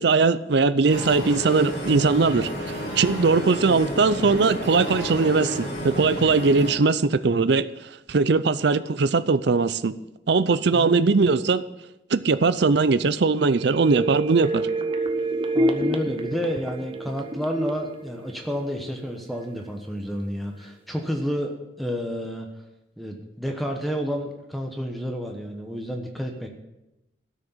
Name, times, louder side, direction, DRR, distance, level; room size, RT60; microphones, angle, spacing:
voice 1, 0.0-2.5 3.0-7.7 8.1-9.9 10.3-11.6 12.1-14.7, right 4 dB, 60° right, 15 dB, 0.5 m, -20 dB
sound 1, 0.9-6.7, equal, 45° left, 5.4 m, -31 dB
sound 2, 13.4-19.1 19.4-19.5, right 1 dB, 25° right, 0.8 m, -28 dB
voice 2, 15.5-21.5 21.8-22.5 23.0-26.5, equal, ahead, 2 dB, 1.0 m, -30 dB
12.5 x 6.4 x 7.3 m, 0.93 s
head